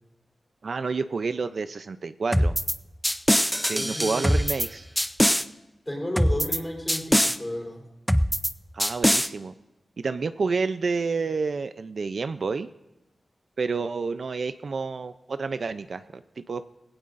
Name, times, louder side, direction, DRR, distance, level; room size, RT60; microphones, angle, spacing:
voice 1, 0.6-2.6 3.6-4.9 8.7-9.5 10.0-12.7 13.6-16.7, right 4 dB, 60° right, 11 dB, 0.5 m, -29 dB
sound 1, 2.3-2.7 3.0-4.7 5.0-5.4 6.2-6.6 6.9-7.4 8.1-8.5 8.8-9.3, equal, ahead, 0.5 m, -22 dB
voice 2, 3.7-4.2 5.9-7.8, left 1 dB, 15° left, 0 dB, 3.9 m, -33 dB
19.5 x 16.5 x 2.6 m, 0.95 s
wide cardioid pair, 110°, 0 cm